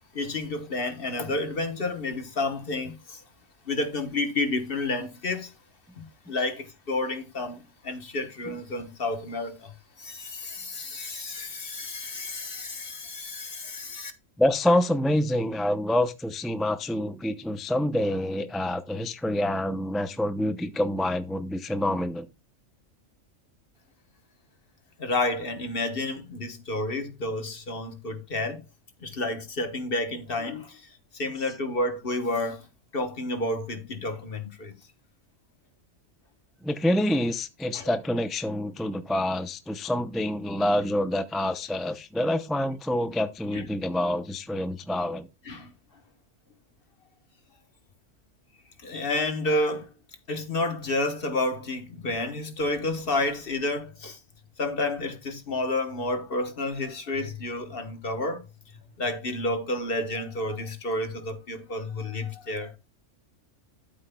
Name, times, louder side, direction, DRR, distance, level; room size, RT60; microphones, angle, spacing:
voice 1, 0.1-3.2 3.6-5.5 6.0-9.7 10.0-14.1 25.0-28.6 29.0-30.8 31.1-32.7 32.9-34.7 37.7-37.9 43.5-43.6 45.5-45.7 48.8-49.9 50.3-54.2 54.6-58.4 59.0-62.7, left 2 dB, 45° left, 1.4 m, -30 dB
voice 2, 14.4-22.3 36.6-45.3, left 1 dB, ahead, 0.4 m, -27 dB
13.0 x 7.8 x 2.3 m
omnidirectional pair, 1.4 m